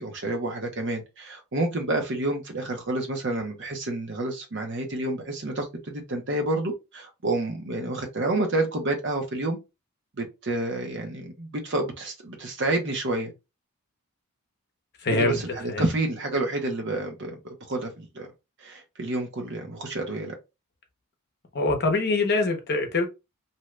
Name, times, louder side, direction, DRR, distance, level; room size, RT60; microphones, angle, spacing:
voice 1, 0.0-9.6 10.2-13.3 15.1-17.4 17.7-18.3 18.6-20.3, right 2 dB, 55° right, 0.9 m, -29 dB
voice 2, 15.0-15.4 15.7-15.8 21.5-23.0, left 2 dB, 50° left, 0.8 m, -24 dB
2.8 x 2.3 x 3.1 m
head